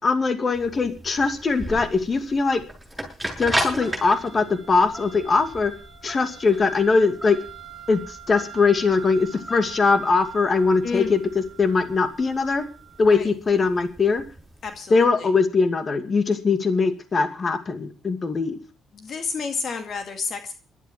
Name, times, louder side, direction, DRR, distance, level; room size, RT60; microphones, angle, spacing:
voice 1, 0.0-2.6 3.4-5.7 6.0-7.4 7.9-12.6 13.0-14.2 14.9-18.6, left 4 dB, 40° left, 8 dB, 2.4 m, -21 dB
sound 1, 0.6-14.7, right 1 dB, ahead, 7.1 m, -35 dB
voice 2, 10.8-11.2 13.0-13.3 14.6-15.3 18.9-20.5, left 5 dB, 55° left, 6 dB, 2.2 m, -30 dB
15.0 x 12.5 x 6.0 m, 0.37 s
cardioid pair, 90°, 0 cm